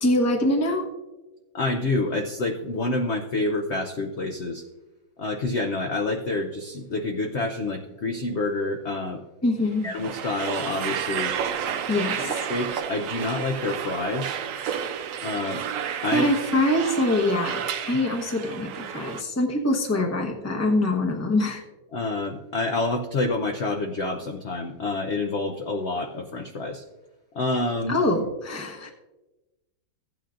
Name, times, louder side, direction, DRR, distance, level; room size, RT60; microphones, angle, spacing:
voice 1, 0.0-0.9 9.4-9.9 11.9-12.5 16.1-21.6 27.9-28.9, left 1 dB, 15° left, 2 dB, 0.7 m, -24 dB
voice 2, 1.5-4.6 5.2-9.2 9.8-11.3 12.0-14.4 15.2-15.6 16.0-16.3 21.9-26.8 27.3-28.0, left 2 dB, 65° left, 2 dB, 0.7 m, -28 dB
sound 1, 9.7-19.2, right 8 dB, 75° right, 0.7 m, -31 dB
15.5 x 9.3 x 2.5 m, 1.1 s
omnidirectional pair, 2.0 m